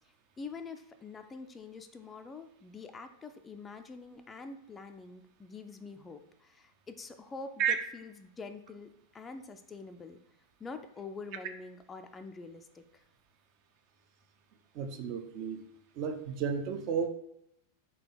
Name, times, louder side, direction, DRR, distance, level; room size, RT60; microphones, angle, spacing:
voice 1, 0.4-10.2 10.6-13.0, left 4 dB, 15° left, 7 dB, 0.3 m, -46 dB
voice 2, 14.7-15.6 16.0-17.1, right 7 dB, 40° right, 6 dB, 0.5 m, -32 dB
3.7 x 2.8 x 3.9 m, 0.75 s
figure-of-eight pair, 90°, 0 cm